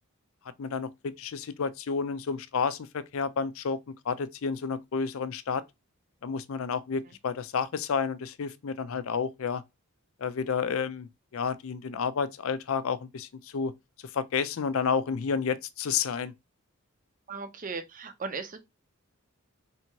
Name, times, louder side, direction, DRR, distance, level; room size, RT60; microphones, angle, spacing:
voice 1, 0.6-3.8 4.0-5.6 6.2-9.6 10.2-13.7 14.0-16.3, left 5 dB, 65° left, 0.4 m, -30 dB
voice 2, 17.3-18.6, right 4 dB, 35° right, 0.6 m, -37 dB
3.4 x 2.8 x 4.4 m
head